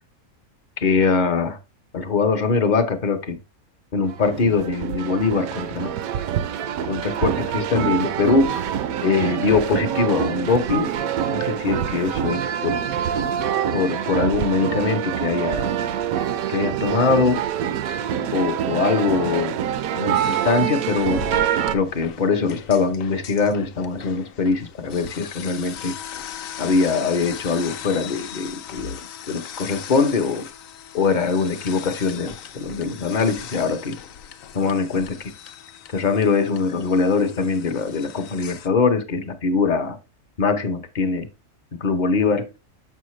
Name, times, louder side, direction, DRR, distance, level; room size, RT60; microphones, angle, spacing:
voice 1, 0.8-1.6 1.9-3.4 3.9-5.9 6.9-8.6 9.0-10.9 11.3-12.8 13.7-15.7 16.5-17.4 18.3-19.6 19.9-21.2 21.7-25.9 26.6-29.0 29.3-30.5 30.9-34.0 34.5-35.3 35.9-40.0 40.4-41.3 41.8-42.5, left 4 dB, 40° left, 0.7 m, -22 dB
sound 1, 4.1-21.8, right 9 dB, 75° right, 1.0 m, -25 dB
sound 2, 20.1-38.7, left 8 dB, 70° left, 1.0 m, -39 dB
6.9 x 5.6 x 3.1 m
omnidirectional pair, 1.5 m